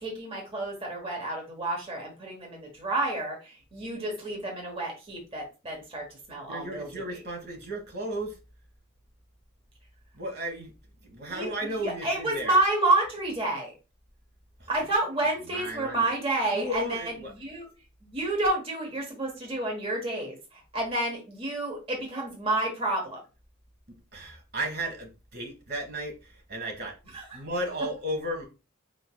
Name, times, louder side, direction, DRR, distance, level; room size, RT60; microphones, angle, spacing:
voice 1, 0.0-7.2 11.3-11.5 11.8-13.7 14.7-17.1 17.4-17.7 18.0-20.4 20.7-23.2 27.1-27.4, right 2 dB, 30° right, 1.1 m, -29 dB
voice 2, 6.5-8.3 10.2-10.7 11.0-12.6 14.6-14.7 15.2-16.1 16.5-17.3 24.1-26.9 27.3-28.5, right 1 dB, 50° right, 1.3 m, -34 dB
4.8 x 3.8 x 2.2 m
head